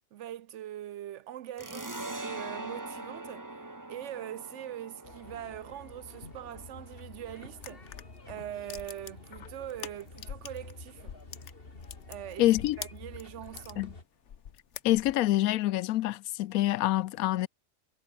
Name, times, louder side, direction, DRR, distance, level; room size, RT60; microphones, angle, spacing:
voice 1, 0.1-3.5 3.9-7.9 8.3-11.2 12.1-12.5 12.8-13.9, right 11 dB, 65° right, 0.8 m, -42 dB
sound 1, 1.6-8.8, right 2 dB, 15° right, 1.2 m, -43 dB
sound 2, 5.0-14.0, left 3 dB, 40° left, 3.0 m, -49 dB
sound 3, 7.6-10.7 11.0-13.8 14.2-15.3, left 8 dB, 60° left, 1.2 m, -44 dB
voice 2, 12.4-12.8 13.8-13.9 14.8-17.5, left 15 dB, 90° left, 1.0 m, -26 dB
omnidirectional pair, 1.5 m